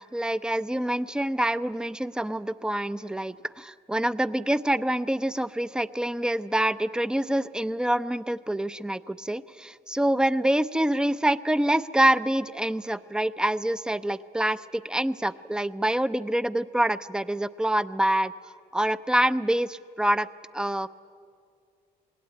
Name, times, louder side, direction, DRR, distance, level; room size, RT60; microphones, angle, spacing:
voice 1, 0.0-18.3 18.7-20.3 20.5-20.9, right 1 dB, 5° right, 14 dB, 0.6 m, -26 dB
26.0 x 20.0 x 9.4 m, 2.3 s
cardioid pair, 110°, 17 cm